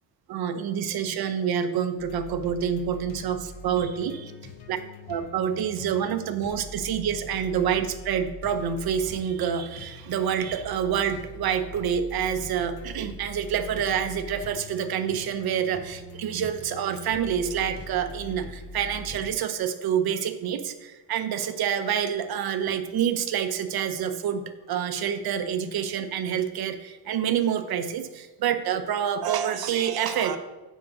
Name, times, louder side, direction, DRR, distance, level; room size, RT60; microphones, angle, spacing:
voice 1, 0.3-4.3 4.7-4.8 5.1-30.4, right 8 dB, 55° right, 8 dB, 0.8 m, -27 dB
sound 1, 2.0-19.3, left 2 dB, 60° left, 1.1 m, -42 dB
9.3 x 3.7 x 6.3 m, 1.2 s
cardioid pair, 150°, 43 cm